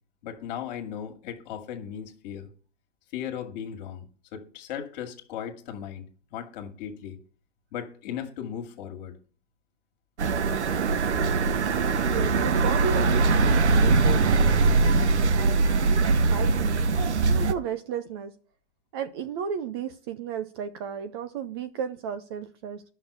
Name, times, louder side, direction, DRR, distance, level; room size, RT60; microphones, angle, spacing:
voice 1, 0.2-2.5 3.1-4.0 4.3-6.0 6.3-7.2 7.7-9.1, left 9 dB, 40° left, 2.3 m, -37 dB
sound 1, 10.2-17.5, right 3 dB, 80° right, 1.2 m, -22 dB
voice 2, 12.0-16.8 17.3-18.3 18.9-22.8, right 8 dB, 25° right, 0.5 m, -34 dB
11.5 x 6.2 x 6.9 m
hypercardioid pair, 140°, 34 cm